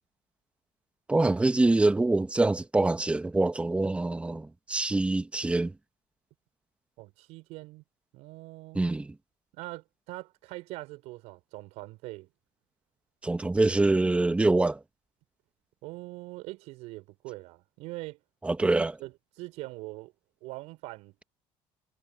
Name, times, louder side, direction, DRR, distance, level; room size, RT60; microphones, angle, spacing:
voice 1, 1.1-5.7 8.7-9.1 13.2-14.8 18.4-18.9, right 2 dB, 10° right, 1.4 m, -25 dB
voice 2, 7.0-7.8 8.1-8.8 9.5-12.3 15.8-18.2 18.6-20.1 20.4-21.2, right 21 dB, 85° right, 5.4 m, -42 dB
cardioid pair, 125°, 11 cm